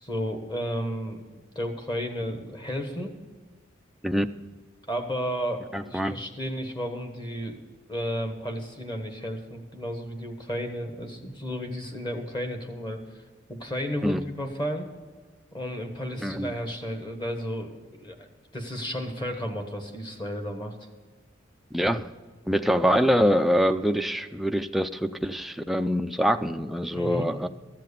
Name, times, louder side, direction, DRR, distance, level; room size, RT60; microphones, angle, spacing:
voice 1, 0.0-3.1 4.9-7.6 7.9-13.0 13.5-14.9 15.5-17.7 18.0-18.3 18.5-20.8 26.9-27.3, equal, 25° left, 5 dB, 1.3 m, -33 dB
voice 2, 5.7-6.1 14.0-14.2 16.2-16.5 21.7-22.1 22.5-27.5, equal, ahead, 7 dB, 0.3 m, -24 dB
13.5 x 7.6 x 6.8 m, 1.3 s
head